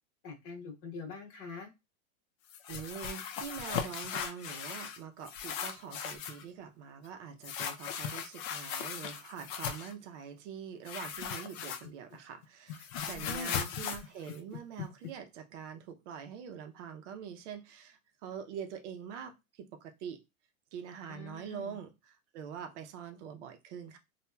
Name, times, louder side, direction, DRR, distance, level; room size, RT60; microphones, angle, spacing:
voice 1, 0.2-1.7 13.1-13.6 21.1-21.8, left 4 dB, 30° left, 1.1 m, -44 dB
sound 1, 2.5-5.0 5.2-6.4 7.4-9.9 10.8-12.2 12.4-15.1, left 8 dB, 65° left, 0.6 m, -38 dB
voice 2, 2.7-20.2 20.7-24.0, right 7 dB, 55° right, 0.6 m, -44 dB
2.8 x 2.3 x 2.2 m
supercardioid pair, 135°, 42 cm